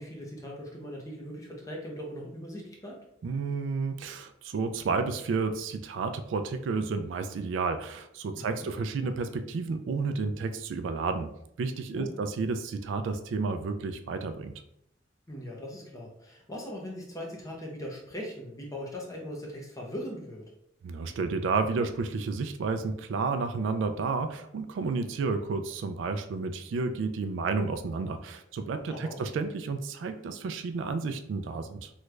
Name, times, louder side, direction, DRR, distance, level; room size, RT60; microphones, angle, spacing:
voice 1, 0.0-3.0 8.3-8.7 11.9-12.2 15.3-20.5 28.9-29.2, equal, 15° left, -2 dB, 0.6 m, -40 dB
voice 2, 3.2-11.3 11.6-14.5 20.8-31.9, right 4 dB, 75° right, 8 dB, 0.3 m, -31 dB
3.1 x 2.4 x 3.2 m, 0.76 s
head